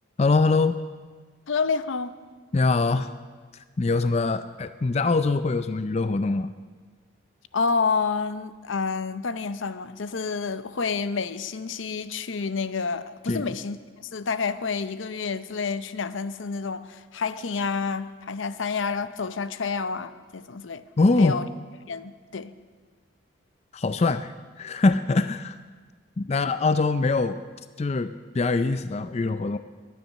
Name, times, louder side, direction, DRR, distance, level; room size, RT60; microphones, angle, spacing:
voice 1, 0.2-0.8 2.5-3.1 3.8-6.5 13.3-13.4 21.0-21.4 23.7-25.6 26.2-27.4 27.8-29.6, left 3 dB, 35° left, 0.4 m, -23 dB
voice 2, 1.5-2.1 7.5-13.8 14.1-20.8 21.2-21.5 21.9-22.5, left 5 dB, 75° left, 0.7 m, -29 dB
23.0 x 9.4 x 6.4 m
head